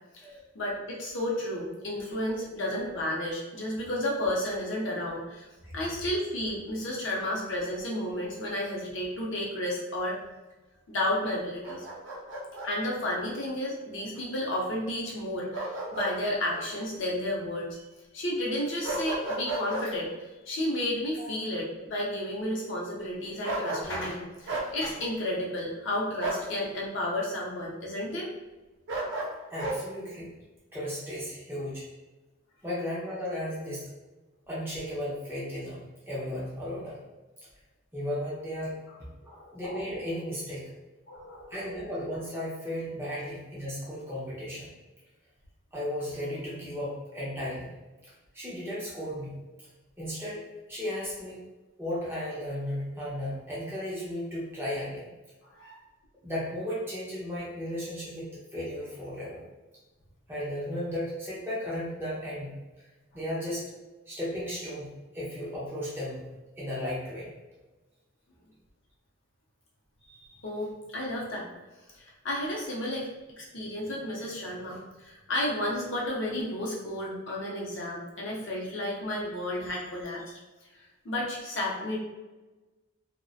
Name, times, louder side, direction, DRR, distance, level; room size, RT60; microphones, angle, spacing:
voice 1, 0.5-5.5 5.7-10.2 10.9-11.9 12.6-17.8 18.1-20.1 20.5-28.3 39.2-39.6 41.1-41.6 55.6-55.8 70.2-71.5 72.0-73.1 73.4-80.4 80.7-82.0, left 1 dB, 60° left, -3 dB, 0.6 m, -32 dB
Bark, 11.6-12.7 15.5-16.1 16.5-16.6 18.8-19.9 23.4-24.1 24.5-24.7 26.2-26.5 28.9-29.8, right 2 dB, 60° right, 0.4 m, -33 dB
voice 2, 29.5-30.3 30.7-31.9 32.6-33.9 34.5-37.0 37.9-38.8 39.5-40.7 41.5-44.7 45.7-47.7 48.3-49.3 50.0-50.4 50.7-51.4 51.8-55.1 56.2-59.4 60.3-62.5 63.1-63.6 64.1-64.9 65.1-66.3 66.6-67.3, left 1 dB, 10° right, -7 dB, 0.5 m, -35 dB
2.6 x 2.0 x 2.3 m, 1.1 s
head